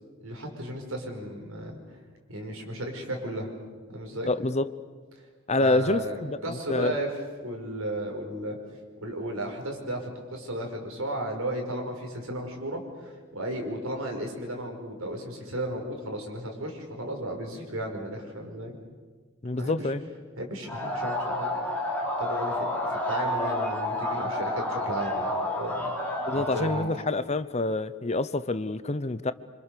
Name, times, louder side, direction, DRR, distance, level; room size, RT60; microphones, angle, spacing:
voice 1, 0.2-1.8 2.3-3.5 3.9-4.3 5.6-7.1 7.4-8.6 9.0-18.8 19.5-19.9 20.4-21.7 22.2-25.9 26.3-26.9, right 1 dB, 85° right, 2 dB, 5.3 m, -34 dB
voice 2, 4.2-4.7 5.5-6.9 19.4-20.0 26.2-29.3, left 2 dB, 30° left, 14 dB, 0.7 m, -27 dB
sound 1, 20.7-26.9, left 1 dB, 10° left, 4.1 m, -30 dB
26.5 x 26.5 x 6.8 m, 1.5 s
head